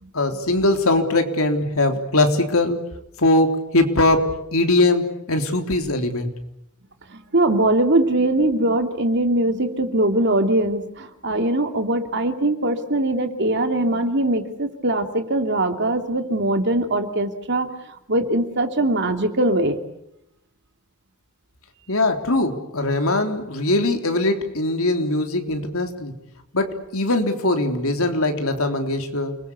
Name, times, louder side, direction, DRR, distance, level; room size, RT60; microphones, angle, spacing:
voice 1, 0.1-2.8 3.2-6.3 21.9-26.1 26.5-29.4, left 2 dB, 70° left, 5 dB, 3.6 m, -21 dB
voice 2, 7.1-17.7 18.1-19.8, right 1 dB, 50° right, 6 dB, 2.8 m, -21 dB
29.0 x 21.5 x 8.4 m, 0.81 s
head